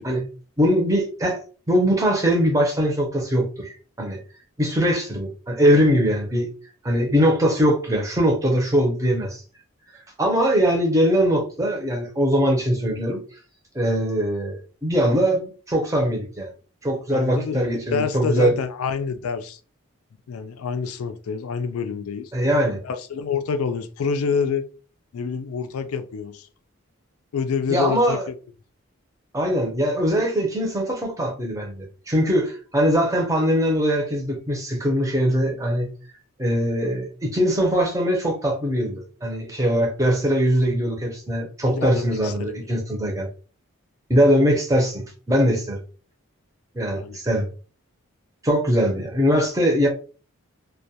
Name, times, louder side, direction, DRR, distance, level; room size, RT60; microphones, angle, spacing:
voice 1, 0.6-1.4 1.7-4.2 4.6-6.5 6.8-9.4 10.2-13.2 13.7-16.5 16.8-18.5 22.3-22.8 27.7-28.3 29.3-35.9 36.4-43.3 44.1-45.8 46.7-47.5 48.4-49.9, equal, 15° right, 0.6 m, -21 dB
voice 2, 17.1-19.6 20.3-22.3 22.8-24.6 25.1-26.5 27.3-28.3 41.6-42.7 47.0-47.2, left 5 dB, 80° left, 0.4 m, -27 dB
2.2 x 2.2 x 2.7 m
head